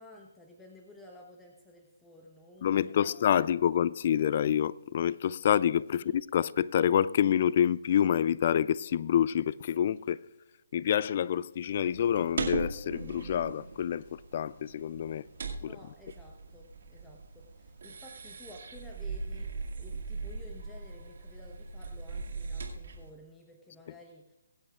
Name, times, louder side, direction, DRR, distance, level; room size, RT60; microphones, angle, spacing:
voice 1, 0.0-3.6 5.9-6.1 15.6-24.3, left 1 dB, 5° left, 1.0 m, -53 dB
voice 2, 2.6-10.2 10.7-15.2 15.6-15.7, left 9 dB, 40° left, 0.3 m, -27 dB
sound 1, 11.7-23.1, right 4 dB, 60° right, 2.2 m, -40 dB
24.0 x 9.0 x 2.4 m
figure-of-eight pair, 150°, 0 cm